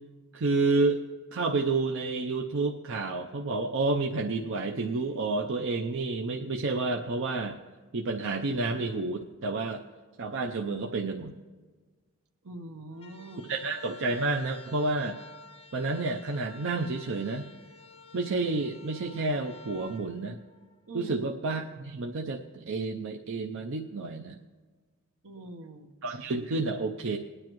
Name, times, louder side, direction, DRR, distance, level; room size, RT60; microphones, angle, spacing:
voice 1, 0.3-1.0 1.3-7.6 7.9-9.8 10.2-11.3 13.5-15.2 15.7-17.5 18.1-20.4 20.9-24.4 26.0-27.2, right 3 dB, 60° right, 2 dB, 0.6 m, -30 dB
voice 2, 12.4-13.4 20.9-21.2 25.2-26.2, right 2 dB, 80° right, 5 dB, 1.1 m, -44 dB
sound 1, 12.9-21.1, left 4 dB, 30° left, 0.5 m, -52 dB
20.5 x 9.7 x 3.1 m, 1.4 s
head